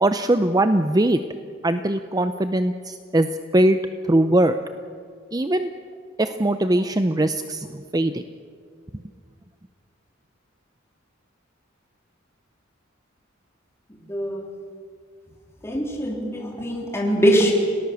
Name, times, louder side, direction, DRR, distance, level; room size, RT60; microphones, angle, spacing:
voice 1, 0.0-1.2 1.6-3.3 3.5-3.8 4.0-4.6 5.3-5.7 6.2-8.2, right 1 dB, 20° right, 9 dB, 0.6 m, -20 dB
voice 2, 14.1-14.4 15.6-17.5, equal, 15° left, -1 dB, 3.6 m, -22 dB
30.0 x 18.5 x 7.0 m, 2.1 s
head